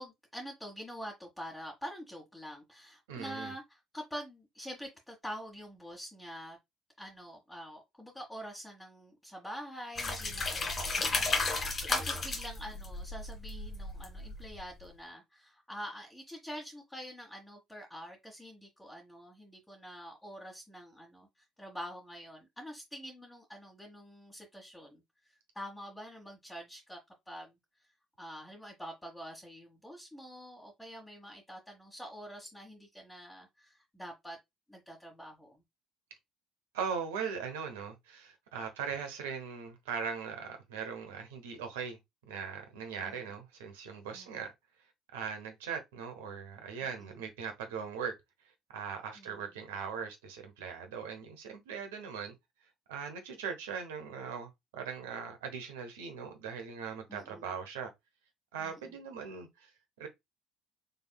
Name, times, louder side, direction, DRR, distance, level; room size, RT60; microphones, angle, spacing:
voice 1, 0.0-6.6 7.0-21.3 21.6-25.0 25.5-27.0 27.3-27.5 28.2-34.4 34.7-35.6 43.0-43.2 44.1-44.3 46.8-47.2 49.2-49.4 57.1-57.5 58.6-58.8, equal, 10° left, 1.5 m, -46 dB
voice 2, 3.1-3.5 36.7-42.0 42.3-44.5 45.1-48.1 48.7-52.3 52.9-57.9 58.5-59.7 60.0-60.1, right 6 dB, 75° right, 1.1 m, -40 dB
sound 1, 10.0-14.6, left 3 dB, 40° left, 2.1 m, -33 dB
5.3 x 3.5 x 2.2 m
hypercardioid pair, 55°, 0 cm